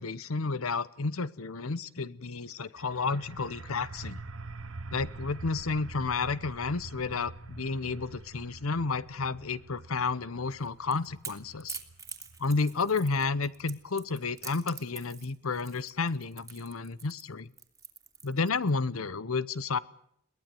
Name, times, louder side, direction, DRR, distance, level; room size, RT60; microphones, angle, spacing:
voice 1, 0.0-4.2 4.9-11.8 12.4-17.5 18.2-19.8, left 4 dB, 85° left, 19 dB, 0.9 m, -31 dB
sound 1, 2.8-14.2, right 3 dB, 70° right, 1.1 m, -46 dB
Crackle / Crack, 10.5-18.7, right 6 dB, 15° right, 2.5 m, -45 dB
23.0 x 18.0 x 9.1 m, 0.71 s
head